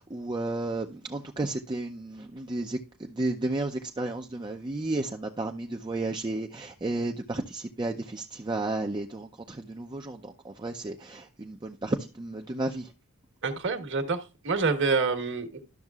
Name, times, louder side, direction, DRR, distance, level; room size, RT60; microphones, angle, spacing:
voice 1, 0.0-12.9, right 2 dB, 20° right, 0.5 m, -33 dB
voice 2, 13.4-15.6, right 4 dB, 55° right, 1.3 m, -27 dB
12.0 x 6.4 x 2.4 m
head